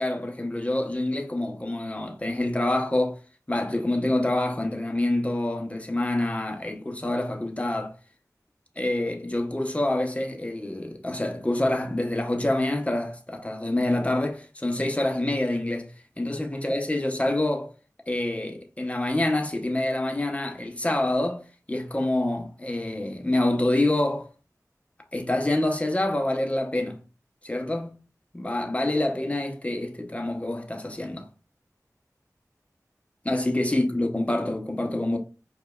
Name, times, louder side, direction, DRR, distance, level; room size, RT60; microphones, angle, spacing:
voice 1, 0.0-3.2 3.5-8.0 8.8-17.7 18.1-24.3 25.1-27.0 27.4-28.0 28.3-31.3 33.2-35.2, left 1 dB, 20° left, 0.7 m, -26 dB
4.9 x 2.2 x 2.2 m
wide cardioid pair, 50°, 6 cm